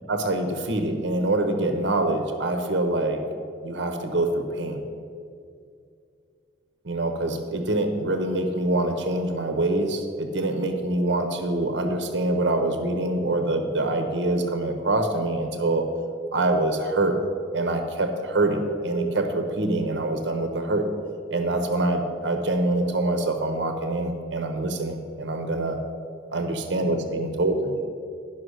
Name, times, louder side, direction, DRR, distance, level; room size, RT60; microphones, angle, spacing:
voice 1, 0.1-3.2 3.6-4.8 6.8-15.8 16.3-17.2 17.5-20.9 21.3-25.8 26.3-27.8, right 2 dB, 75° right, 6 dB, 0.8 m, -25 dB
11.0 x 5.9 x 6.3 m, 2.4 s
head